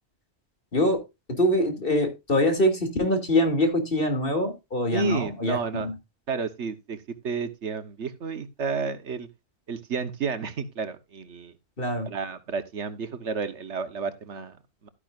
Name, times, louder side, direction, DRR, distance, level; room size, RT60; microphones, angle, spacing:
voice 1, 1.3-5.9 11.8-12.1, left 1 dB, 50° left, 2.9 m, -24 dB
voice 2, 4.9-5.9 6.3-9.3 9.7-11.5 12.1-14.9, right 5 dB, 75° right, 1.4 m, -31 dB
12.5 x 9.9 x 2.5 m
omnidirectional pair, 1.2 m